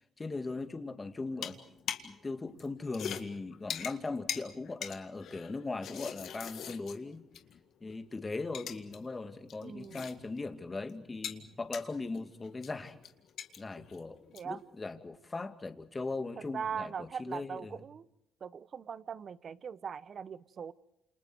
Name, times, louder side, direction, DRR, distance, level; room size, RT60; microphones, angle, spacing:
voice 1, 0.2-1.6 2.0-7.2 7.8-13.0 13.6-14.2 14.4-17.8, left 3 dB, 25° left, 2.4 m, -39 dB
sound 1, 1.3-2.2 2.5-7.6 7.9-8.0 8.4-9.0 9.3-10.5 10.7-14.6, left 9 dB, 70° left, 1.9 m, -43 dB
voice 2, 9.6-10.0 14.3-14.6 16.5-18.1 18.4-20.7, right 7 dB, 50° right, 1.0 m, -40 dB
29.0 x 28.5 x 4.7 m
supercardioid pair, 75°, 0 cm